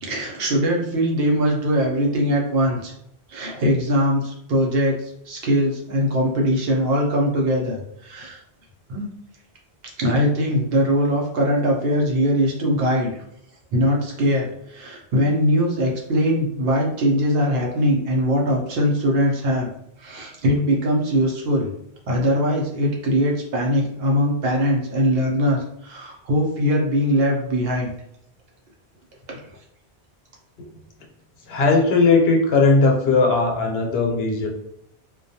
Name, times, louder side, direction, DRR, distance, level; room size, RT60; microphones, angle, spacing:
voice 1, 0.0-2.9 3.3-8.4 8.9-9.1 10.0-13.1 13.7-19.7 20.0-21.7 22.1-27.9 29.3-29.4, equal, 70° right, -1 dB, 0.9 m, -21 dB
voice 2, 31.5-34.5, left 3 dB, 75° left, 0 dB, 0.8 m, -18 dB
2.3 x 2.2 x 2.6 m, 0.75 s
omnidirectional pair, 1.1 m